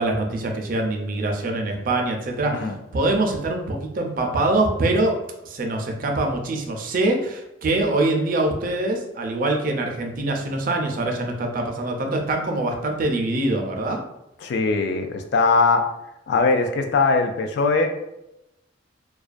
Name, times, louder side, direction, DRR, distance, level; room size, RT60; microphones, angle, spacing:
voice 1, 0.0-5.2 5.4-14.0, right 2 dB, 45° right, 2 dB, 0.4 m, -24 dB
voice 2, 2.5-2.8 14.4-15.8 16.3-17.9, left 4 dB, 60° left, 5 dB, 0.3 m, -20 dB
2.3 x 2.1 x 2.4 m, 0.88 s
head